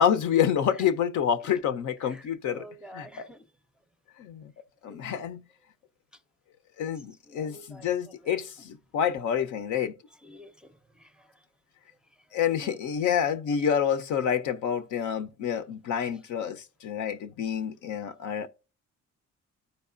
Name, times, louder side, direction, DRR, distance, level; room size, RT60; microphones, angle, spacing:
voice 1, 0.0-2.6 2.9-3.1 4.2-4.5 4.8-5.4 6.8-9.9 12.3-18.5, left 8 dB, 80° left, 0.7 m, -28 dB
voice 2, 2.0-3.5 4.9-5.2 7.3-7.9 8.2-8.4 10.2-11.4 12.6-12.8, equal, 5° right, 0.5 m, -48 dB
13.0 x 4.7 x 2.5 m
cardioid pair, 90°, 30 cm